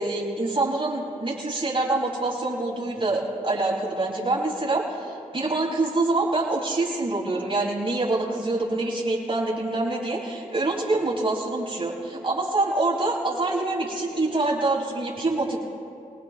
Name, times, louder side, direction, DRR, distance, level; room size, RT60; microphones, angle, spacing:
voice 1, 0.0-15.6, right 2 dB, 40° right, -4 dB, 4.6 m, -25 dB
27.5 x 19.5 x 2.4 m, 2.6 s
wide cardioid pair, 90°, 14 cm